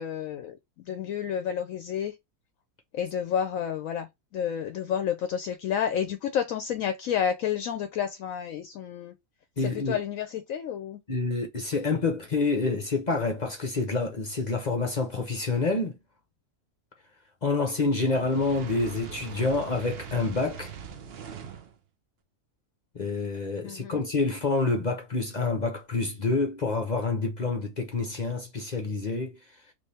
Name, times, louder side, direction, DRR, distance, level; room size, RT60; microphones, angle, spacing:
voice 1, 0.0-2.1 2.9-4.1 4.3-9.2 9.6-11.0 23.6-24.0, left 8 dB, 70° left, 0.9 m, -30 dB
voice 2, 9.6-10.0 11.1-16.0 17.4-20.7 22.9-29.4, left 3 dB, 40° left, 0.6 m, -27 dB
Fire, 18.1-21.7, right 7 dB, 55° right, 0.7 m, -41 dB
3.3 x 3.3 x 4.2 m
omnidirectional pair, 1.6 m